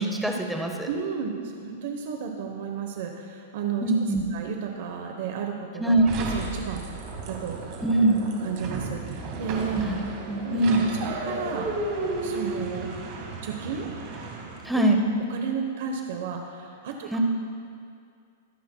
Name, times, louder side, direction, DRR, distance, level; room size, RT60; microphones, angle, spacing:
voice 1, 0.0-0.9 3.8-4.2 5.8-6.1 7.8-8.2 9.7-10.8 14.6-15.0 17.1-17.2, right 2 dB, ahead, 1 dB, 0.9 m, -23 dB
voice 2, 0.9-4.0 4.3-7.8 8.4-9.8 10.4-10.6 11.0-11.8 12.2-12.9 13.4-13.9 14.7-14.8 15.3-17.2, right 6 dB, 55° right, 3 dB, 1.0 m, -33 dB
sound 1, 6.1-14.8, right 3 dB, 40° right, 1.9 m, -34 dB
23.0 x 10.5 x 2.3 m, 2.3 s
supercardioid pair, 165°, 0 cm